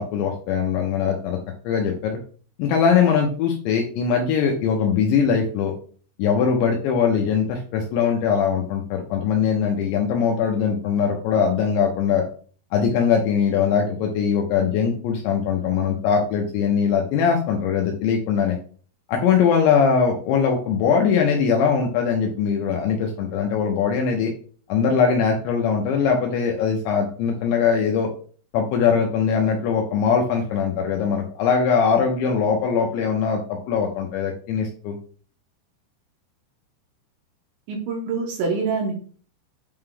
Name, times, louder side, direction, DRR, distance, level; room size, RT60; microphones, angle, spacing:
voice 1, 0.0-1.4 1.6-2.1 2.6-5.7 6.2-12.2 12.7-18.6 19.1-24.3 24.7-28.1 28.5-35.0, left 6 dB, 80° left, 1 dB, 2.7 m, -21 dB
voice 2, 37.7-39.0, right 4 dB, 75° right, 1 dB, 2.9 m, -25 dB
8.7 x 3.1 x 3.8 m, 0.43 s
omnidirectional pair, 6.0 m